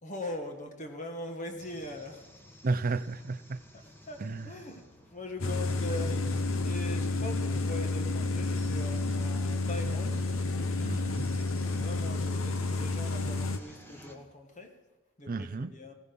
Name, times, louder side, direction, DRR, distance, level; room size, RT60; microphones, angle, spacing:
voice 1, 0.0-2.2 4.0-4.8 5.1-10.2 11.7-14.7 15.2-15.9, left 1 dB, 35° left, 5 dB, 1.6 m, -41 dB
sound 1, 1.6-14.2, equal, 10° left, 1.5 m, -54 dB
voice 2, 2.6-3.6 4.2-4.5 10.8-11.2 15.3-15.7, right 3 dB, 45° right, 15 dB, 0.5 m, -32 dB
sound 2, 5.4-13.6, left 3 dB, 75° left, 1.0 m, -30 dB
16.0 x 15.0 x 5.4 m, 1.1 s
head